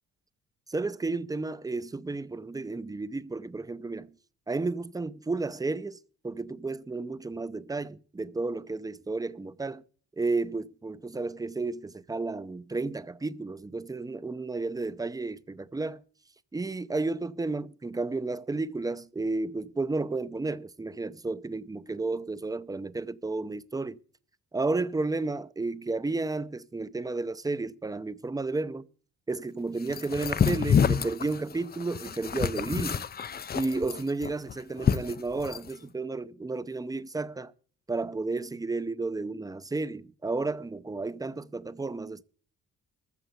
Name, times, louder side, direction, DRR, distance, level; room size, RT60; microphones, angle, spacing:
voice 1, 0.7-4.1 4.5-6.0 6.2-9.8 10.2-16.0 16.5-24.0 24.5-28.9 29.3-33.1 33.5-37.5 37.9-42.2, right 3 dB, 10° right, 0.7 m, -32 dB
sound 1, 29.9-35.7, left 7 dB, 30° left, 0.6 m, -28 dB
14.0 x 6.8 x 8.0 m
cardioid pair, 90°, 30 cm